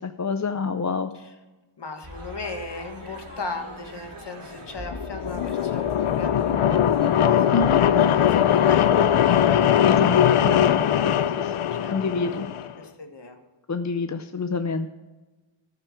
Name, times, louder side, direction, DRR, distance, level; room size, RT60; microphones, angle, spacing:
voice 1, 0.0-1.1 7.5-7.8 10.0-12.5 13.7-14.9, left 4 dB, 35° left, 8 dB, 0.6 m, -28 dB
voice 2, 1.8-9.9 11.7-12.5 12.8-13.4, left 3 dB, 55° left, 6 dB, 1.6 m, -37 dB
sound 1, 2.0-9.7, right 2 dB, 80° right, 3.0 m, -41 dB
sound 2, 4.8-12.7, left 9 dB, 90° left, 0.6 m, -20 dB
15.0 x 6.7 x 5.8 m, 1.1 s
wide cardioid pair, 90°, 49 cm